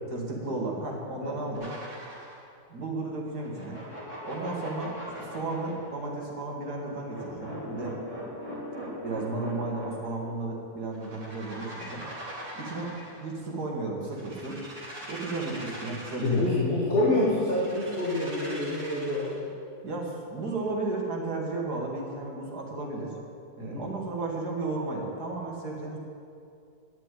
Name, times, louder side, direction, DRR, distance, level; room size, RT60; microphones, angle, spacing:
voice 1, 0.1-1.7 2.7-3.8 4.2-7.9 9.0-12.0 12.6-12.9 13.2-14.6 15.1-16.6 19.8-23.1 23.6-26.0, right 2 dB, 65° right, -1 dB, 2.4 m, -34 dB
sound 1, 1.5-2.4 3.4-5.9 6.7-10.2 10.9-13.3 14.1-16.5 17.5-19.4, right 1 dB, 45° right, 3.9 m, -41 dB
voice 2, 16.2-19.4 23.6-23.8, left 2 dB, 35° left, -5 dB, 1.8 m, -27 dB
9.8 x 7.5 x 9.1 m, 2.4 s
omnidirectional pair, 1.8 m